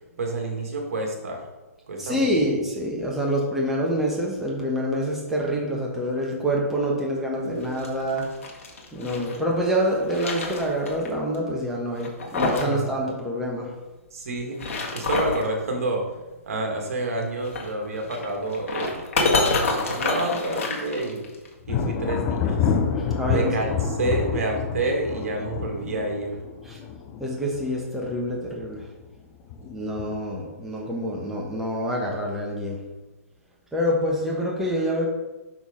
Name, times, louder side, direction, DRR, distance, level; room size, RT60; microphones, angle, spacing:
voice 1, 0.2-1.4 1.9-2.3 12.6-12.8 14.1-14.6 14.9-16.1 16.5-21.2 21.7-22.6 23.3-26.4, right 2 dB, 65° right, 1 dB, 1.9 m, -28 dB
voice 2, 2.0-8.3 8.9-13.7 23.0-23.5 26.6-26.8 27.2-28.8 29.6-32.8 33.7-35.1, equal, 5° right, -3 dB, 1.1 m, -26 dB
sound 1, 7.6-9.4 9.8-11.1 11.3-11.4 11.9-12.8 13.0-13.1 14.4-15.5 17.4-21.5, left 3 dB, 55° left, 1.7 m, -27 dB
Thunder, 21.6-28.1 28.5-29.0 29.5-30.3, left 6 dB, 30° left, 0.7 m, -28 dB
6.1 x 6.1 x 3.7 m, 1.1 s
figure-of-eight pair, 130°, 8 cm